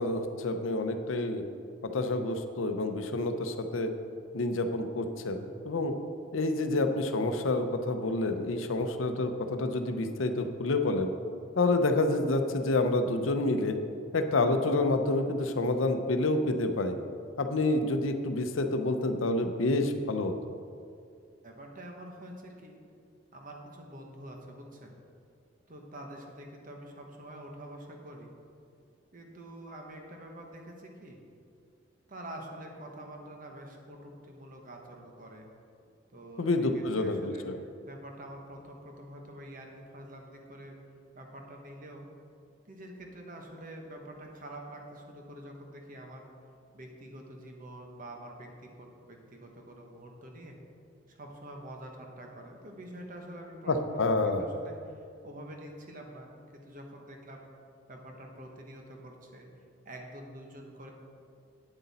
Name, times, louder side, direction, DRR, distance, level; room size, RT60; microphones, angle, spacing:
voice 1, 0.0-1.4 1.8-3.9 4.3-5.9 6.3-11.1 11.6-13.8 14.1-17.0 17.4-20.5 36.4-37.6 53.7-54.4, left 2 dB, 85° left, 7 dB, 0.7 m, -28 dB
voice 2, 21.4-22.8 23.3-24.9 25.7-28.3 29.1-31.2 32.1-35.5 36.1-37.4 37.9-40.8 41.1-42.1 42.7-46.3 46.7-50.6 51.1-54.7 55.2-57.4 57.9-59.5 59.8-60.9, right 1 dB, 45° right, 1 dB, 1.2 m, -46 dB
9.1 x 7.8 x 4.2 m, 2.3 s
head